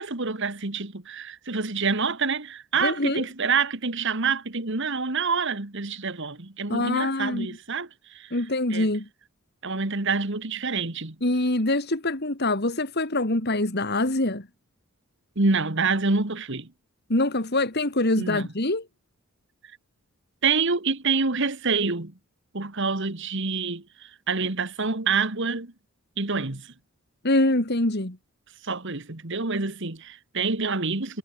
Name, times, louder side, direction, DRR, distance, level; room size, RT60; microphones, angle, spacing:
voice 1, 0.0-8.4 8.7-8.9 9.6-11.2 15.4-16.7 18.2-18.5 20.4-22.1 22.5-25.7 26.2-26.7 28.6-31.2, right 4 dB, 55° right, 1.9 m, -27 dB
voice 2, 2.8-3.3 6.7-7.5 8.3-9.1 11.2-14.5 17.1-18.9 27.2-28.2, left 2 dB, 50° left, 2.5 m, -24 dB
head